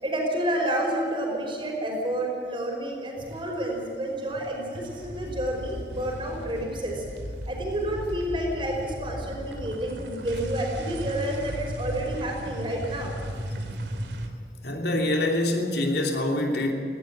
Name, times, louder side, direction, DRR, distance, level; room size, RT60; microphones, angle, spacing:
voice 1, 0.0-7.0 7.5-13.1, right 1 dB, 30° right, 0 dB, 5.1 m, -29 dB
sound 1, 3.2-4.0 4.2-14.3, equal, 80° right, 2.7 m, -36 dB
voice 2, 14.6-16.7, left 1 dB, 70° left, 2 dB, 3.0 m, -25 dB
18.5 x 17.0 x 8.2 m, 2.6 s
head